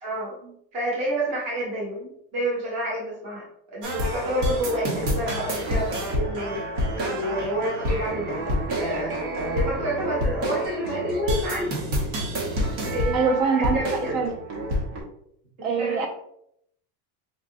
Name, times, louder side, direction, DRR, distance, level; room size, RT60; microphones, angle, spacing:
voice 1, 0.0-6.6 7.0-9.2 9.5-11.7 12.8-14.2 15.6-16.1, right 1 dB, 15° right, -4 dB, 0.4 m, -29 dB
sound 1, 3.8-15.0, equal, 75° right, 1.2 m, -28 dB
voice 2, 13.1-14.3 15.6-16.1, right 5 dB, 60° right, 3 dB, 0.8 m, -24 dB
4.4 x 2.3 x 2.6 m, 0.71 s
cardioid pair, 180°, 49 cm